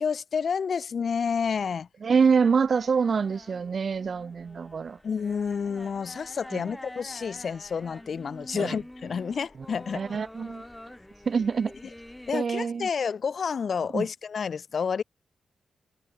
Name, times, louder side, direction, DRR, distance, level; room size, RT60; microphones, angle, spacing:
voice 1, 0.0-1.9 5.0-10.2 12.3-15.0, left 6 dB, 55° left, 2.0 m, -29 dB
voice 2, 2.0-5.0 6.5-6.6 8.5-8.8 9.9-10.6 11.3-11.7 12.3-12.9 13.9-14.1, right 5 dB, 50° right, 0.6 m, -25 dB
sound 1, 2.3-12.3, left 1 dB, 10° left, 2.9 m, -47 dB
wide cardioid pair, 115°, 0 cm